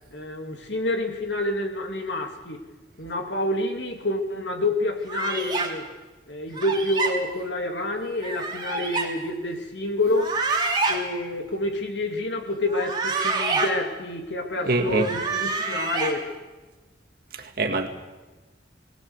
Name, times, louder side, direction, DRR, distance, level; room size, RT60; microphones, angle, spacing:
voice 1, 0.1-2.6 3.0-5.9 6.3-10.4 10.9-16.3, left 1 dB, 80° left, 4 dB, 2.7 m, -28 dB
sound 1, 5.1-5.7 6.5-7.1 8.2-9.1 10.1-11.0 12.6-13.7 14.8-16.1, right 3 dB, 25° right, 3.0 m, -27 dB
voice 2, 14.7-15.1 17.3-17.9, right 3 dB, 55° right, 5 dB, 2.1 m, -24 dB
20.5 x 18.5 x 8.1 m, 1.2 s
head